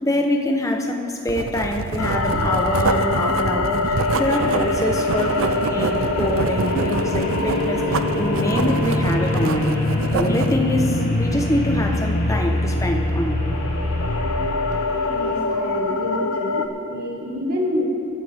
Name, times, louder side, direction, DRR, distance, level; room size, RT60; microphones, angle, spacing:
voice 1, 0.0-9.7 10.1-13.4, left 1 dB, 15° left, 3 dB, 0.9 m, -25 dB
Writing, 1.3-10.6, right 4 dB, 75° right, 0.5 m, -26 dB
sound 1, 2.0-16.7, left 2 dB, 90° left, 0.8 m, -23 dB
sound 2, 3.9-15.4, equal, 35° left, 2.1 m, -34 dB
voice 2, 15.1-17.8, left 1 dB, 45° right, -2 dB, 2.1 m, -28 dB
23.0 x 8.9 x 3.5 m, 2.5 s
head